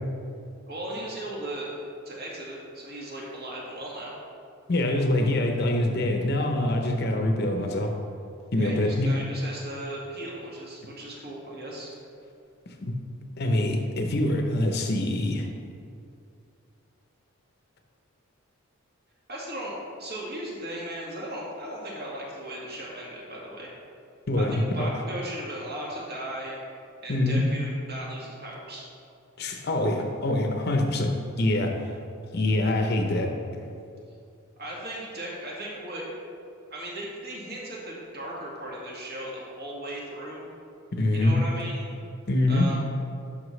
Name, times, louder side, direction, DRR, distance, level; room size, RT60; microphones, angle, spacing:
voice 1, 0.7-1.7 2.1-4.1 8.6-11.9 19.3-23.7 24.4-26.6 27.0-28.9 34.6-36.1 36.7-40.4 41.1-41.9 42.5-42.8, right 1 dB, 50° right, -4 dB, 1.9 m, -37 dB
voice 2, 4.7-7.9 8.5-9.2 12.8-12.9 13.4-15.5 24.3-25.0 27.1-27.5 29.4-31.8 32.3-33.3 40.9-41.4 42.3-42.7, left 1 dB, 50° left, 3 dB, 0.8 m, -25 dB
11.0 x 5.8 x 3.2 m, 2.4 s
head